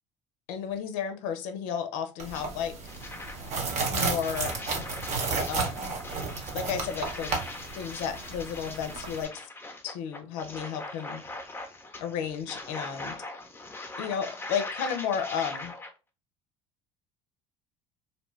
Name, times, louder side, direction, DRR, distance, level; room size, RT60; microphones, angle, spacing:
voice 1, 0.5-2.7 3.9-4.6 5.5-6.0 6.5-7.3 7.8-9.5 9.8-11.2 12.0-13.2 14.0-15.7, left 7 dB, 65° left, 8 dB, 0.5 m, -33 dB
sound 1, 2.2-9.2, right 4 dB, 45° right, 0.9 m, -33 dB
sound 2, 2.3-2.4 2.8-15.9, left 2 dB, 15° left, 0.6 m, -41 dB
2.7 x 2.2 x 3.0 m, 0.30 s
hypercardioid pair, 70°, 16 cm